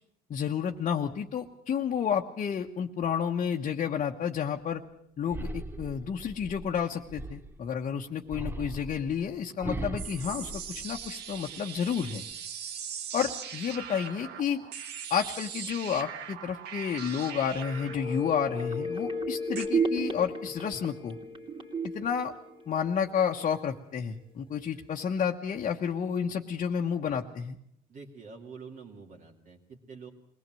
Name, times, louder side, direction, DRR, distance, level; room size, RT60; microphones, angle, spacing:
voice 1, 0.3-4.8 5.2-12.2 13.1-14.6 15.1-21.2 21.9-22.3 22.7-27.6, left 7 dB, 45° left, 1 dB, 1.1 m, -31 dB
sound 1, 5.3-7.7 8.3-11.4 11.8-12.3, right 2 dB, 15° right, 0.9 m, -39 dB
sound 2, 10.0-19.7, right 8 dB, 80° right, 1.4 m, -41 dB
sound 3, 17.5-23.2 23.6-23.7, right 2 dB, 30° right, 2.9 m, -33 dB
voice 2, 27.9-30.1, right 5 dB, 55° right, -1 dB, 2.6 m, -46 dB
22.0 x 18.0 x 7.7 m, 0.73 s
cardioid pair, 110°, 17 cm